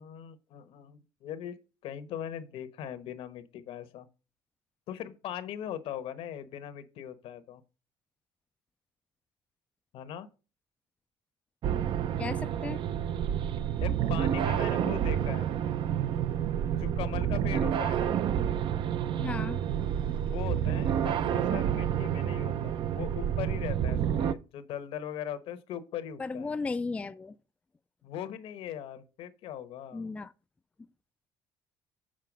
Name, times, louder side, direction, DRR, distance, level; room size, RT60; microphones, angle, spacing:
voice 1, 0.0-4.1 4.9-7.6 9.9-10.3 13.8-15.5 16.8-18.1 20.1-26.5 28.0-30.1, left 10 dB, 75° left, 1.1 m, -40 dB
sound 1, 11.6-24.3, right 9 dB, 55° right, 0.6 m, -29 dB
voice 2, 12.2-12.8 19.2-19.6 26.2-27.4 29.9-30.3, left 3 dB, 15° left, 0.3 m, -35 dB
7.6 x 4.5 x 6.0 m
cardioid pair, 120°, 10 cm